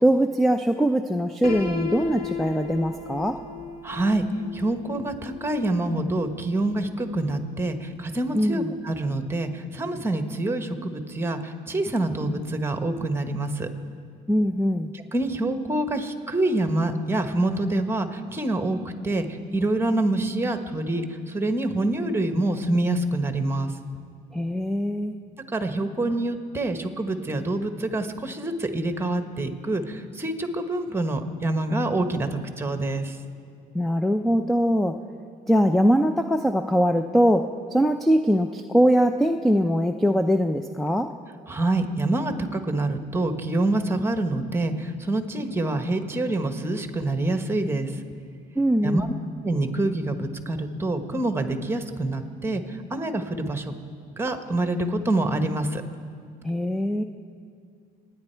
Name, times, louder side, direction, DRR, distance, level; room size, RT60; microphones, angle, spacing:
voice 1, 0.0-3.4 8.3-8.7 14.3-14.9 24.3-25.1 33.7-35.0 35.5-41.1 48.6-49.1 56.4-57.0, equal, ahead, 7 dB, 0.5 m, -22 dB
Piano, 1.4-7.3, left 4 dB, 60° left, 2.7 m, -36 dB
voice 2, 3.8-4.2 4.5-13.7 14.9-23.8 25.5-33.2 41.5-48.0 48.8-49.1 49.4-53.7 54.2-55.8, right 2 dB, 15° right, 7 dB, 1.2 m, -26 dB
27.5 x 9.9 x 4.5 m, 2.3 s
cardioid pair, 110°, 17 cm